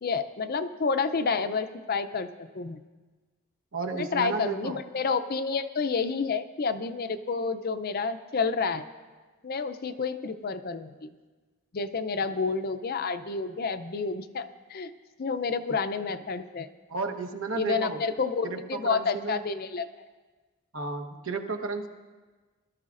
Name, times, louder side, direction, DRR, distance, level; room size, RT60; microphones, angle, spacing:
voice 1, 0.0-2.8 4.0-8.8 9.4-11.1 11.7-14.9 15.2-16.7 17.6-20.0, left 4 dB, 45° left, 11 dB, 0.5 m, -29 dB
voice 2, 3.7-4.8 16.9-18.0 18.4-19.4 20.7-21.9, right 4 dB, 60° right, 5 dB, 1.1 m, -33 dB
21.5 x 13.0 x 2.5 m, 1.3 s
head